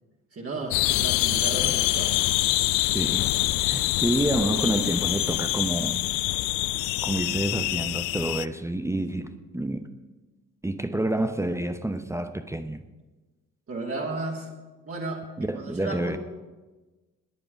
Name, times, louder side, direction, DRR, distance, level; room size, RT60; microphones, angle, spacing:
voice 1, 0.3-2.2 8.9-9.3 13.7-14.5 14.8-15.2 15.5-16.2, right 2 dB, 35° right, -2 dB, 2.7 m, -34 dB
sound 1, 0.7-8.5, left 19 dB, 55° left, 0.5 m, -25 dB
voice 2, 2.9-3.3 3.6-6.0 7.0-9.3 9.5-9.9 10.6-12.8 15.4-16.2, right 1 dB, 5° right, 9 dB, 0.8 m, -28 dB
17.5 x 11.0 x 5.2 m, 1.2 s
figure-of-eight pair, 45°, 39 cm